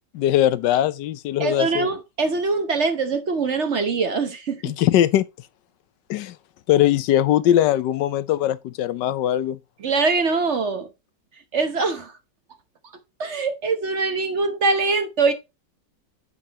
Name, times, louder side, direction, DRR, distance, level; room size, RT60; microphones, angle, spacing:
voice 1, 0.1-1.9 4.6-5.2 6.1-6.3 6.7-9.6, left 12 dB, 85° left, 1.3 m, -20 dB
voice 2, 1.4-4.6 9.8-10.9 11.5-12.1 13.2-15.3, right 4 dB, 45° right, 1.1 m, -23 dB
9.5 x 7.4 x 2.9 m
omnidirectional pair, 1.9 m